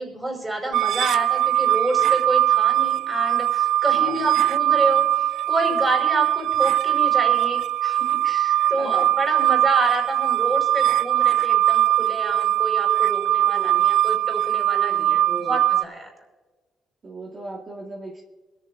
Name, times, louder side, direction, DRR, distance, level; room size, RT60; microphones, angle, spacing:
voice 1, 0.0-16.1, right 1 dB, 20° right, 2 dB, 5.1 m, -29 dB
sound 1, 0.7-15.8, right 12 dB, 75° right, 0.3 m, -21 dB
voice 2, 3.9-4.3 8.8-9.1 13.4-13.8 14.9-15.6 17.0-18.2, right 2 dB, 45° right, -6 dB, 2.7 m, -37 dB
23.0 x 14.0 x 2.6 m, 1.3 s
cardioid pair, 90°, 0 cm